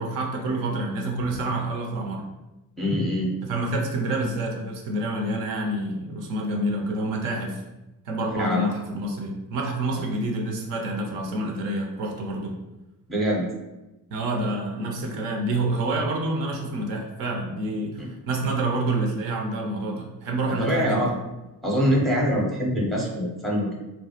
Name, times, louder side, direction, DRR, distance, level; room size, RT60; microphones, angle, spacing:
voice 1, 0.0-2.3 3.4-7.6 8.1-12.6 14.1-21.2, right 2 dB, 65° right, 1 dB, 0.6 m, -28 dB
voice 2, 2.8-3.3 8.4-8.7 9.9-10.0 13.1-13.5 18.0-18.1 20.6-21.1 21.6-23.7, equal, ahead, -2 dB, 0.6 m, -24 dB
2.2 x 2.1 x 2.7 m, 1.0 s
hypercardioid pair, 50°, 47 cm